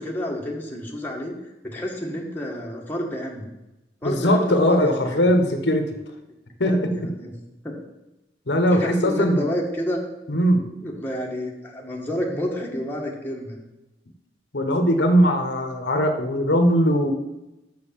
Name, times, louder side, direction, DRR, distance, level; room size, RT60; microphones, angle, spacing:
voice 1, 0.0-1.4 1.6-3.5 4.0-5.3 6.6-7.3 7.6-7.7 8.7-10.0 10.8-13.6, left 1 dB, 10° left, -2 dB, 1.6 m, -30 dB
voice 2, 4.0-5.9 6.6-6.9 8.5-9.4 10.3-10.6 14.5-17.1, equal, 70° left, 6 dB, 1.1 m, -20 dB
6.6 x 6.2 x 7.4 m, 0.96 s
head